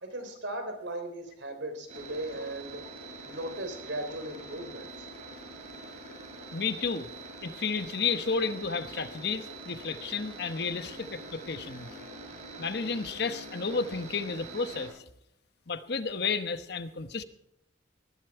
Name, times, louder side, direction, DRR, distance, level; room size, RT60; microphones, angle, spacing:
voice 1, 0.0-2.8 3.2-5.1, right 1 dB, 75° right, 6 dB, 3.7 m, -37 dB
sound 1, 1.9-14.9, right 2 dB, 40° right, 7.1 m, -45 dB
voice 2, 6.5-7.1 7.4-11.9 12.6-15.0 15.7-17.2, left 5 dB, 60° left, 10 dB, 1.0 m, -32 dB
19.0 x 11.5 x 4.7 m, 0.76 s
head